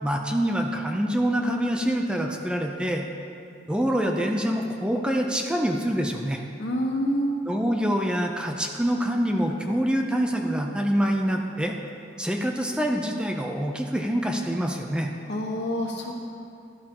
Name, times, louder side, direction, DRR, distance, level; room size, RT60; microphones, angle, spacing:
voice 1, 0.0-3.0 3.7-6.4 7.5-11.8 12.2-15.1, equal, 5° right, 2 dB, 0.5 m, -25 dB
voice 2, 6.6-7.3 15.3-16.1, equal, 70° left, -1 dB, 1.5 m, -27 dB
13.0 x 12.0 x 2.9 m, 2.6 s
head